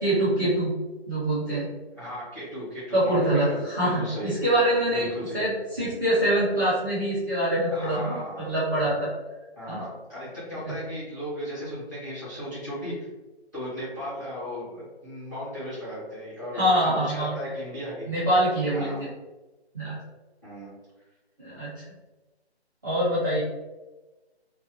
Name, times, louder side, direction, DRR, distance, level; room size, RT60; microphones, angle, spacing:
voice 1, 0.0-0.7 1.1-1.7 2.9-5.1 5.3-9.1 9.7-9.8 10.6-10.7 16.5-17.4 18.1-18.9 19.7-20.0 21.4-21.9 22.8-23.4, right 1 dB, 20° right, -11 dB, 0.8 m, -24 dB
voice 2, 1.9-3.2 3.5-4.4 4.9-5.4 7.7-8.5 9.6-13.1 13.5-18.1 18.7-19.1 20.4-20.8, equal, 15° left, -10 dB, 0.9 m, -36 dB
3.4 x 2.2 x 2.7 m, 1.2 s
hypercardioid pair, 175°, 33 cm